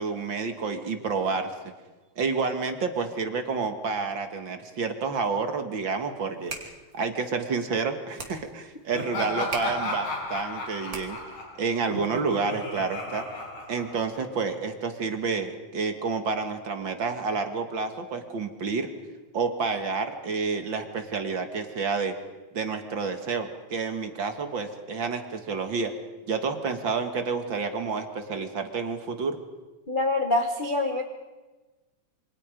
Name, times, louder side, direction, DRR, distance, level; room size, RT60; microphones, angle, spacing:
voice 1, 0.0-1.5 2.2-11.2 11.6-13.2 13.7-18.9 19.3-22.1 22.5-25.9 26.3-29.4, right 4 dB, 45° right, 6 dB, 2.0 m, -29 dB
sound 1, 6.2-11.4, right 3 dB, 30° right, 2.9 m, -42 dB
Laughter, 8.9-14.4, left 2 dB, 90° left, 7.0 m, -34 dB
voice 2, 29.9-31.0, left 2 dB, 50° left, 3 dB, 0.5 m, -25 dB
27.5 x 24.5 x 5.1 m, 1.2 s
omnidirectional pair, 3.4 m